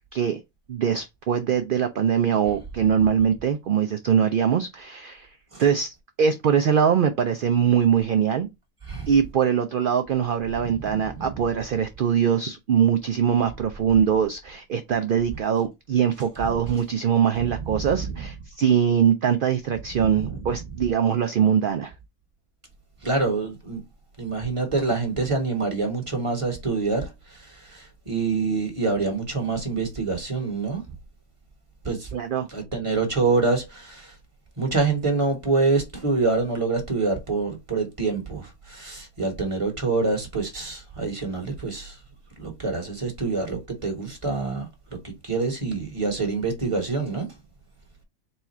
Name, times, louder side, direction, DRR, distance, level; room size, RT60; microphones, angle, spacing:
voice 1, 0.7-8.5 9.1-21.9 32.1-32.5, right 8 dB, 90° right, 0.4 m, -22 dB
voice 2, 10.8-11.3 17.7-18.1 20.0-20.4 23.0-23.8 24.2-30.8 31.8-32.1 32.5-34.2 34.6-42.0 42.4-47.4, right 3 dB, 25° right, 1.2 m, -26 dB
4.2 x 2.4 x 4.1 m
omnidirectional pair, 1.5 m